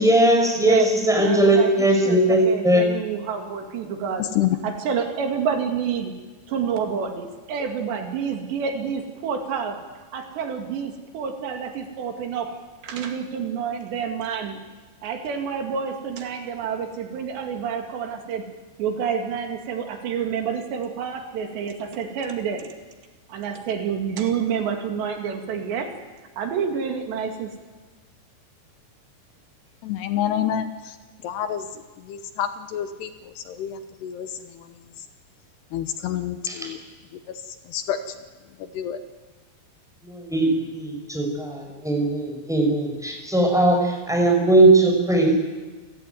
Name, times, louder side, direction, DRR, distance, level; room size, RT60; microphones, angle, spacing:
voice 1, 0.0-2.8 36.5-36.7 40.0-45.4, right 1 dB, ahead, 2 dB, 4.7 m, -19 dB
voice 2, 0.6-0.9 1.2-4.3 4.6-6.1 6.5-9.8 10.1-12.6 12.8-14.6 15.0-18.4 18.8-22.7 23.3-25.9 26.4-27.5, right 6 dB, 75° right, 5 dB, 4.4 m, -28 dB
voice 3, 4.2-4.6 29.8-31.0 31.2-34.7 35.7-36.8 37.3-38.1 38.6-39.0, left 10 dB, 75° left, 10 dB, 2.9 m, -28 dB
29.0 x 17.5 x 9.3 m, 1.3 s
omnidirectional pair, 5.2 m